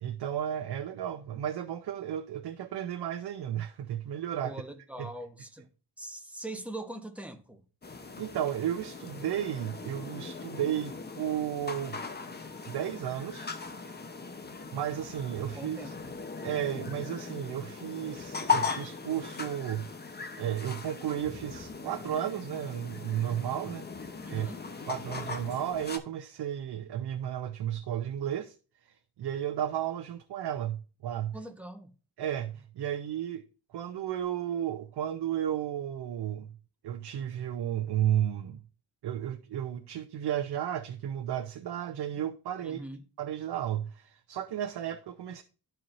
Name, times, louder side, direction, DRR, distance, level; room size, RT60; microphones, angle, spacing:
voice 1, 0.0-4.6 5.0-5.1 8.2-12.0 12.7-13.6 14.7-15.9 16.4-19.9 20.4-23.9 24.3-24.5 24.9-28.6 28.8-31.4 32.2-33.4 33.7-36.6 36.8-38.6 39.0-42.8 43.2-45.4, right 10 dB, 80° right, 0.7 m, -33 dB
voice 2, 4.4-5.7 6.0-7.6 15.6-16.1 24.2-24.6 31.3-31.9 42.6-43.0, right 1 dB, 5° right, 1.1 m, -42 dB
sound 1, 7.8-26.0, left 5 dB, 25° left, 0.9 m, -38 dB
12.5 x 4.5 x 2.6 m
wide cardioid pair, 120°, 39 cm